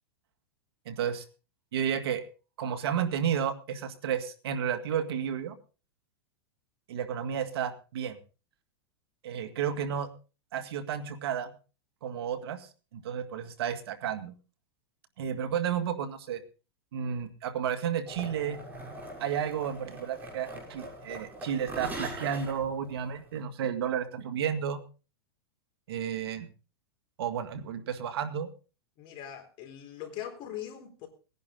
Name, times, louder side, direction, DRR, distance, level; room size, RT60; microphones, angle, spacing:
voice 1, 0.9-1.2 1.7-2.2 2.6-5.5 6.9-8.2 9.2-10.1 10.5-11.5 12.0-14.3 15.2-16.4 16.9-18.6 19.2-24.8 25.9-26.5 27.2-28.5, right 8 dB, 75° right, 8 dB, 2.2 m, -32 dB
sound 1, 18.1-23.4, right 1 dB, 15° right, 7.5 m, -42 dB
voice 2, 29.0-31.1, left 11 dB, 40° left, 4 dB, 4.0 m, -41 dB
19.5 x 10.5 x 3.9 m, 0.34 s
supercardioid pair, 140°, 13 cm